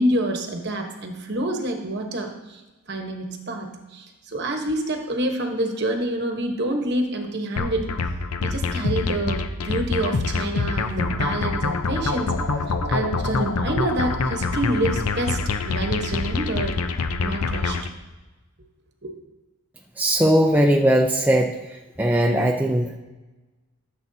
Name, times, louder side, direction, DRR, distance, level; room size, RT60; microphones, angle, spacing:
voice 1, 0.0-2.6 2.9-8.1 8.4-15.4 15.7-16.8 17.2-17.8 19.0-19.2, right 1 dB, 50° right, 3 dB, 1.2 m, -27 dB
sound 1, 7.6-17.9, left 3 dB, 85° left, 0.7 m, -25 dB
voice 2, 20.0-23.0, right 1 dB, 10° right, 1 dB, 0.5 m, -20 dB
15.0 x 7.2 x 2.8 m, 1.1 s
head